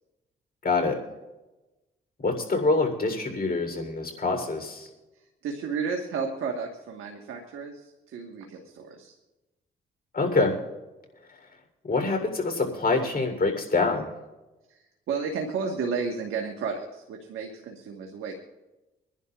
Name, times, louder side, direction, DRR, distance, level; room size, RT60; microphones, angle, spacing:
voice 1, 0.6-1.0 2.2-4.9 10.1-10.6 11.9-14.1, left 3 dB, 45° left, 4 dB, 3.6 m, -25 dB
voice 2, 5.4-9.1 14.7-18.3, right 5 dB, 80° right, 2 dB, 1.5 m, -32 dB
25.5 x 11.0 x 2.5 m, 1.1 s
supercardioid pair, 55°, 21 cm